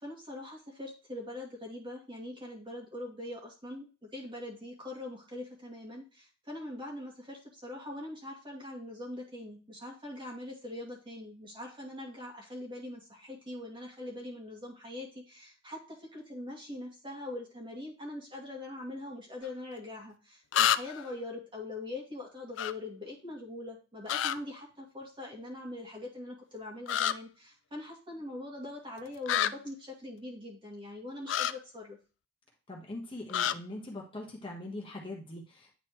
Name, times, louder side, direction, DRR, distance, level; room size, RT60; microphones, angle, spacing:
voice 1, 0.0-32.0, left 1 dB, 25° right, -2 dB, 2.4 m, -42 dB
sound 1, 19.4-19.5 20.5-21.1 22.6-22.7 24.1-24.4 26.9-27.1 29.3-29.5 31.3-31.5 33.3-33.5, left 10 dB, 70° left, 0.4 m, -28 dB
voice 2, 32.7-35.7, left 1 dB, 25° left, -1 dB, 1.3 m, -42 dB
9.3 x 4.2 x 3.1 m, 0.33 s
head